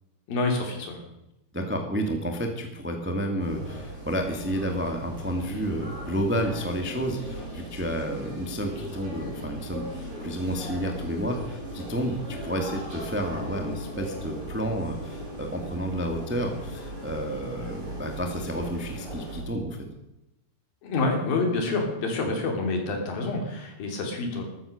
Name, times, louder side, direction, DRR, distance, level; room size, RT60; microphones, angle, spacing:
voice 1, 0.3-1.0 20.8-24.4, left 3 dB, 65° left, 2 dB, 4.6 m, -27 dB
voice 2, 1.5-19.8, equal, 5° right, 4 dB, 0.9 m, -30 dB
sound 1, 3.4-19.4, right 1 dB, 35° right, 8.7 m, -38 dB
14.0 x 13.0 x 6.6 m, 0.90 s
omnidirectional pair, 4.4 m